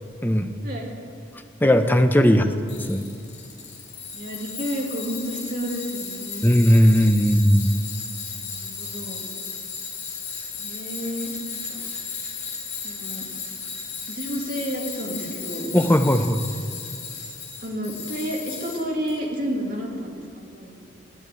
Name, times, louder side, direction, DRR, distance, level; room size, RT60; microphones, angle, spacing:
voice 1, 1.6-2.5 2.9-3.1 6.4-7.7 15.7-16.4, equal, 10° left, 7 dB, 0.6 m, -17 dB
voice 2, 2.2-2.7 4.1-6.5 8.3-9.3 10.6-11.8 12.8-13.3 14.1-15.7 17.6-20.7, equal, 45° right, -1 dB, 2.3 m, -31 dB
Tools, 2.7-19.2, left 5 dB, 60° left, 2.8 m, -35 dB
11.0 x 8.8 x 9.2 m, 2.4 s
head